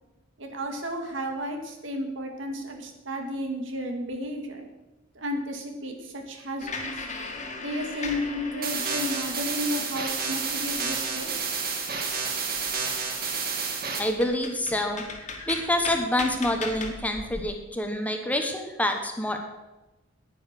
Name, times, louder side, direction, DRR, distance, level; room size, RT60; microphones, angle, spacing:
voice 1, 0.4-4.7 5.1-7.1 7.6-11.4, equal, 70° right, 4 dB, 2.0 m, -33 dB
sound 1, 6.6-9.6 10.1-11.6 12.0-12.1 12.4-12.9 13.6-13.7 14.0-17.4, left 3 dB, 35° left, 2.0 m, -37 dB
sound 2, 8.6-14.0, right 5 dB, 50° right, 1.8 m, -30 dB
voice 2, 14.0-15.0 15.5-19.4, left 1 dB, 10° left, 4 dB, 1.2 m, -27 dB
9.9 x 9.8 x 6.6 m, 1.1 s
head